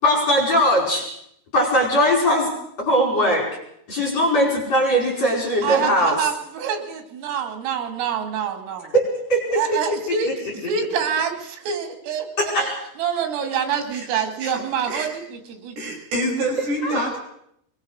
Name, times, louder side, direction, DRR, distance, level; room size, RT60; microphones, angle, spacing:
voice 1, 0.0-1.1 1.5-2.5 2.8-3.5 3.9-6.2 8.9-9.6 10.2-10.3 12.4-12.7 16.8-17.0, equal, 35° left, -1 dB, 5.9 m, -20 dB
voice 2, 5.6-8.9 9.6-10.3 10.6-12.7 13.0-16.0, right 7 dB, 90° right, 6 dB, 5.3 m, -26 dB
voice 3, 15.8-17.2, right 1 dB, 55° right, -1 dB, 7.8 m, -26 dB
22.5 x 21.5 x 6.5 m, 0.73 s
omnidirectional pair, 5.6 m